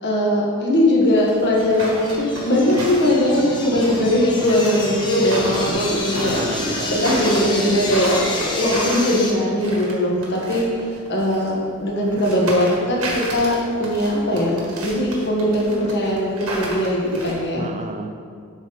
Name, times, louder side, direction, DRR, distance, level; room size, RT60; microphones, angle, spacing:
voice 1, 0.0-6.4 6.9-10.7 11.1-17.7, left 1 dB, 55° left, -3 dB, 1.5 m, -20 dB
sound 1, 1.1-11.5 12.0-17.5, right 1 dB, 85° right, 1.7 m, -32 dB
sound 2, 1.3-9.3, left 2 dB, 20° left, 0.9 m, -28 dB
voice 2, 5.5-5.8 6.2-6.9 17.6-18.2, right 2 dB, 35° right, 4 dB, 0.5 m, -32 dB
10.5 x 4.2 x 4.0 m, 2.1 s
head